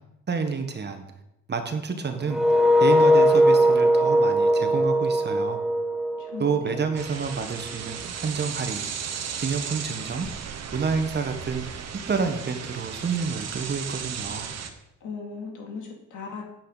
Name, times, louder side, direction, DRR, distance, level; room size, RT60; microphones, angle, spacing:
voice 1, 0.3-1.0 1.5-5.6 6.4-9.1 9.4-10.3 10.7-11.6 12.1-14.5, right 5 dB, 35° right, 7 dB, 1.3 m, -29 dB
sound 1, 2.3-7.1, equal, ahead, 0.5 m, -20 dB
voice 2, 6.2-6.8 15.0-16.4, left 5 dB, 75° left, 0 dB, 2.6 m, -37 dB
sound 2, 6.9-14.7, right 7 dB, 60° right, 1.1 m, -35 dB
8.6 x 8.3 x 4.0 m, 0.83 s
cardioid pair, 90°, 30 cm